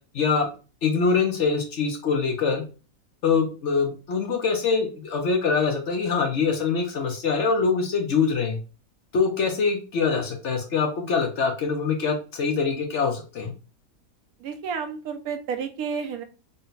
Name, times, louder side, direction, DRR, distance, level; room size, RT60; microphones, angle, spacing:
voice 1, 0.1-0.5 0.8-2.6 3.2-8.6 9.1-13.5, left 5 dB, 60° left, 3 dB, 0.8 m, -24 dB
voice 2, 14.4-16.2, right 6 dB, 75° right, 7 dB, 1.1 m, -31 dB
3.9 x 2.1 x 3.9 m, 0.34 s
omnidirectional pair, 1.6 m